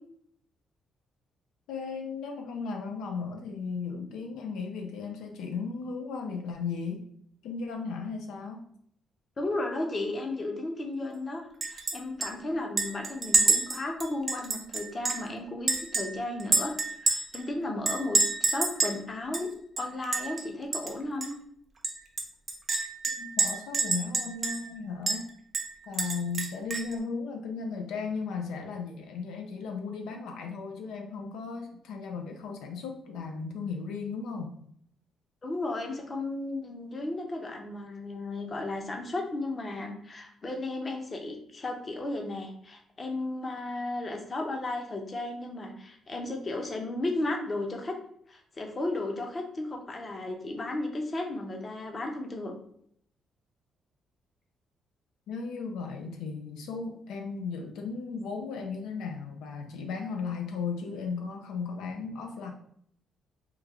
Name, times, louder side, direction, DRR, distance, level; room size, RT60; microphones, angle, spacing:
voice 1, 1.7-7.1 7.4-8.6 23.1-25.3 25.9-34.5 55.3-62.5, left 5 dB, 85° left, 3 dB, 0.4 m, -36 dB
voice 2, 9.4-11.4 11.7-19.5 19.8-21.3 35.4-47.9 48.3-52.5, left 2 dB, 35° left, 2 dB, 0.7 m, -34 dB
Chink clink, 11.6-12.0 12.2-12.3 12.8-15.3 15.7-17.4 17.9-19.0 19.3-19.4 19.8-20.4 20.7-20.9 21.2-21.3 21.8-24.7 25.1-25.2 25.5-26.9, right 4 dB, 35° right, 0.6 m, -28 dB
3.1 x 2.3 x 3.5 m, 0.67 s
cardioid pair, 90°, 0 cm